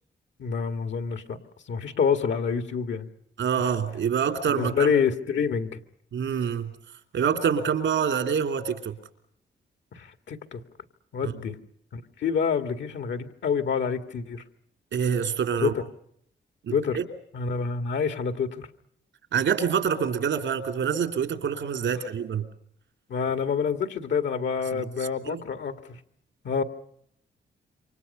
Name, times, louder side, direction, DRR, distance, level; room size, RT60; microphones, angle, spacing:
voice 1, 0.4-1.4 1.7-3.1 4.5-5.8 9.9-10.6 11.1-11.6 11.9-14.4 15.6-15.7 16.7-17.0 17.3-18.7 23.1-26.0 26.4-26.6, left 6 dB, 80° left, 9 dB, 2.0 m, -27 dB
voice 2, 3.4-4.9 6.1-6.7 7.1-9.0 11.2-11.3 14.9-15.7 16.6-17.1 19.3-22.5 24.7-24.9 25.2-25.4, right 7 dB, 85° right, 7 dB, 2.9 m, -26 dB
28.0 x 25.0 x 5.5 m, 0.69 s
wide cardioid pair, 115°, 19 cm